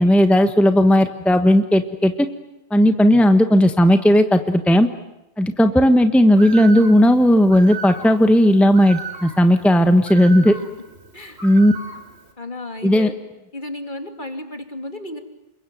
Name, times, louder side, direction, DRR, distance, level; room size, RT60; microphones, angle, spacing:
voice 1, 0.0-2.3 2.7-4.9 5.4-10.5 11.4-11.7 12.8-13.1, equal, ahead, 8 dB, 1.3 m, -15 dB
Bird, 6.3-12.3, right 5 dB, 90° right, 4.0 m, -37 dB
voice 2, 12.4-13.2 13.5-15.2, left 2 dB, 50° left, 6 dB, 3.0 m, -33 dB
27.5 x 23.5 x 9.2 m, 0.93 s
omnidirectional pair, 1.1 m